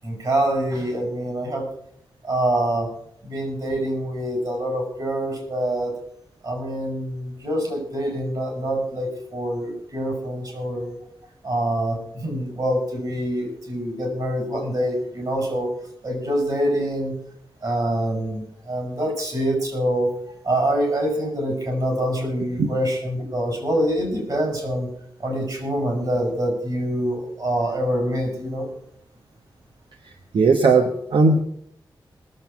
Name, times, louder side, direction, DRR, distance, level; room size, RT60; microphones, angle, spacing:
voice 1, 0.0-1.7 2.2-2.9 3.2-6.0 6.4-11.0 11.4-15.7 16.0-17.2 17.6-20.1 20.4-24.9 25.2-28.7, right 1 dB, 55° right, 1 dB, 7.7 m, -25 dB
voice 2, 30.3-31.4, right 4 dB, 80° right, 4 dB, 1.2 m, -17 dB
20.5 x 7.8 x 6.0 m, 0.70 s
wide cardioid pair, 80°, 8 cm